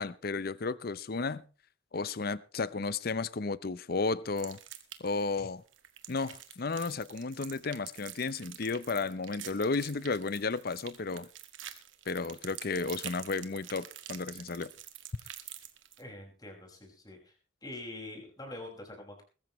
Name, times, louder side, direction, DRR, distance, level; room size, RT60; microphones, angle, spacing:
voice 1, 0.0-1.4 1.9-4.6 5.0-5.6 6.1-11.3 12.1-14.7, left 4 dB, 50° left, 0.7 m, -33 dB
sound 1, 4.4-5.2 5.7-16.0, right 11 dB, 80° right, 1.9 m, -47 dB
voice 2, 16.0-17.3 17.6-19.2, left 2 dB, 20° left, 5.6 m, -45 dB
21.5 x 14.0 x 3.1 m
head